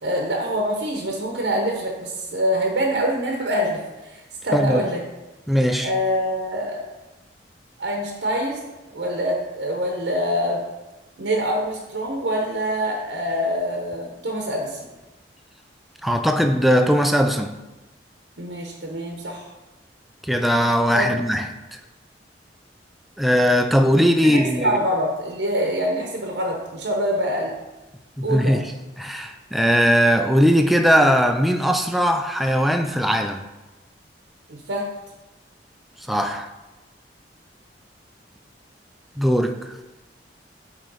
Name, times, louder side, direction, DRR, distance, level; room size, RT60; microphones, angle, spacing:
voice 1, 0.0-5.0 5.8-6.8 7.8-8.6 8.9-10.6 11.2-14.8 18.4-19.5 20.9-21.1 24.2-27.6 28.2-28.5 34.5-34.9, equal, 75° right, 0 dB, 0.8 m, -25 dB
voice 2, 4.5-4.8 5.5-5.9 16.0-17.6 20.2-21.4 21.7-21.8 23.2-24.7 28.2-28.7 29.0-33.5 36.1-36.5 39.2-39.7, equal, ahead, 5 dB, 0.3 m, -19 dB
8.7 x 3.1 x 3.9 m, 1.1 s
head